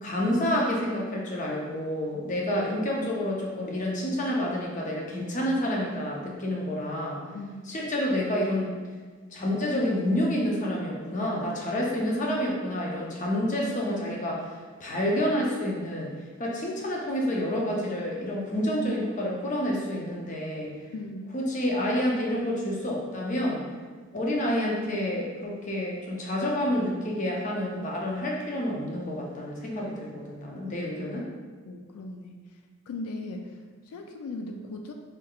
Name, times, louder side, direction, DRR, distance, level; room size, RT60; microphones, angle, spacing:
voice 1, 0.0-7.2 7.7-8.7 9.3-16.1 16.4-20.7 21.3-23.6 24.1-31.2, left 1 dB, 35° left, -2 dB, 0.6 m, -28 dB
voice 2, 20.9-21.4 30.7-30.8 31.7-32.6 32.9-34.9, left 2 dB, 85° left, 4 dB, 0.3 m, -38 dB
4.4 x 3.3 x 2.3 m, 1.5 s
head